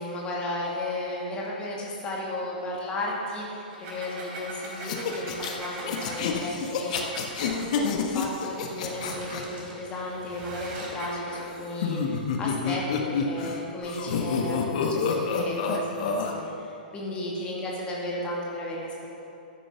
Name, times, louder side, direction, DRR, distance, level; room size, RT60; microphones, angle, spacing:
voice 1, 0.0-16.7 16.9-19.1, left 1 dB, 20° left, -4 dB, 2.4 m, -34 dB
sound 1, 3.6-7.7 8.5-11.3, right 2 dB, 35° right, 3.4 m, -41 dB
sound 2, 4.8-9.4 11.3-13.6 13.8-16.3, left 5 dB, 45° left, 1.3 m, -29 dB
13.5 x 9.8 x 5.9 m, 2.7 s
figure-of-eight pair, 110°, 5 cm